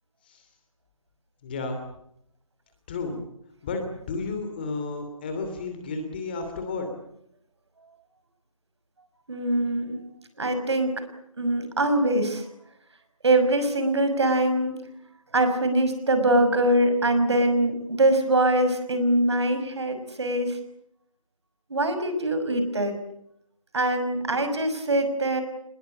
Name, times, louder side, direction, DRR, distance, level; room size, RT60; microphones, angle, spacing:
voice 1, 1.4-1.8 2.9-3.2 3.6-6.9, left 3 dB, 15° left, 5 dB, 2.8 m, -32 dB
voice 2, 9.3-10.0 10.4-10.9 11.4-12.4 13.2-14.7 15.3-20.6 21.7-22.9 23.7-25.4, right 1 dB, 50° right, 9 dB, 6.2 m, -23 dB
26.5 x 21.5 x 8.7 m, 0.75 s
figure-of-eight pair, 175°, 17 cm